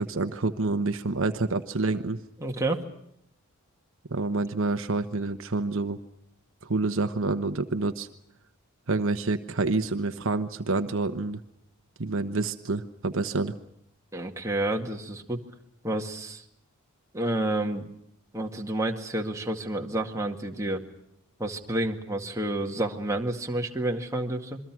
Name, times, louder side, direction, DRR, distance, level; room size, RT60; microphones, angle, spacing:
voice 1, 0.0-2.2 4.1-6.0 6.6-8.1 8.9-11.4 12.0-13.5, right 3 dB, 60° right, 8 dB, 1.1 m, -28 dB
voice 2, 2.4-2.8 14.1-15.4 15.8-16.4 17.1-17.9 18.3-20.8 21.4-24.6, right 1 dB, 15° right, 1 dB, 2.1 m, -29 dB
27.0 x 23.0 x 6.1 m, 0.76 s
head